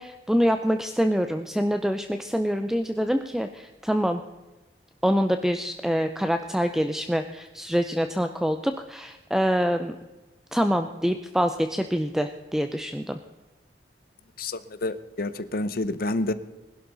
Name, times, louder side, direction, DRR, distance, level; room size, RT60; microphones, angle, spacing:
voice 1, 0.0-4.2 5.0-10.0 10.5-13.2, equal, 5° right, 8 dB, 0.5 m, -25 dB
voice 2, 14.4-16.3, left 2 dB, 55° left, 13 dB, 0.8 m, -29 dB
20.5 x 11.5 x 4.0 m, 1.1 s
head